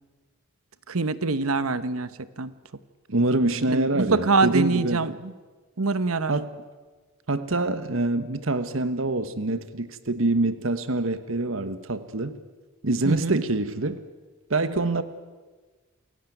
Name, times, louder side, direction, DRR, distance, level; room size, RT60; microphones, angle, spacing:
voice 1, 0.9-2.1 2.4-2.5 3.7-5.3 5.8-6.3 13.0-13.4, right 3 dB, 85° right, 15 dB, 1.1 m, -24 dB
voice 2, 3.1-5.1 6.3-6.6 7.3-12.4 12.8-14.0 14.5-15.0, right 2 dB, 65° right, 13 dB, 1.2 m, -25 dB
28.0 x 16.0 x 9.2 m, 1.4 s
head